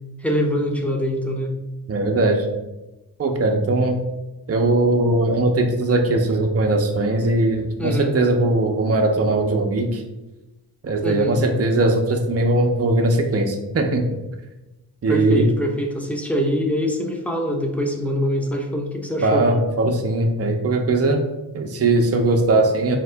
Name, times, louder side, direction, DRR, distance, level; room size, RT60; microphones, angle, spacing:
voice 1, 0.2-1.5 7.8-8.1 11.0-11.4 15.1-19.5, equal, 5° left, 1 dB, 0.8 m, -24 dB
voice 2, 1.9-2.5 3.2-4.0 4.5-10.0 10.8-14.0 15.0-15.5 19.2-21.3 21.5-23.0, right 2 dB, 35° right, 3 dB, 0.7 m, -19 dB
4.0 x 2.8 x 3.3 m, 1.0 s
cardioid pair, 45°, 43 cm